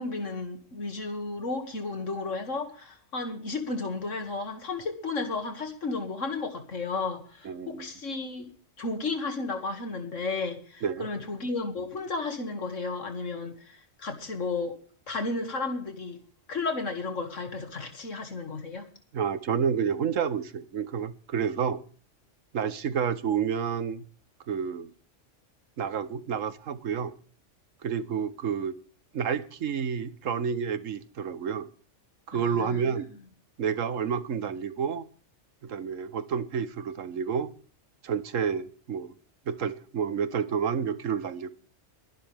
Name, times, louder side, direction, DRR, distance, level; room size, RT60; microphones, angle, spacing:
voice 1, 0.0-8.5 8.8-14.7 15.1-16.2 16.5-18.9 32.3-33.0, left 3 dB, 75° left, 2.6 m, -33 dB
voice 2, 7.4-7.9 10.8-11.1 19.1-21.8 22.5-24.0 24.5-24.9 25.8-27.1 27.8-28.8 29.1-31.7 32.3-33.1 33.6-35.0 35.6-37.5 38.0-39.1 39.5-41.5, right 7 dB, 85° right, 1.4 m, -29 dB
22.0 x 11.0 x 3.5 m
omnidirectional pair, 1.3 m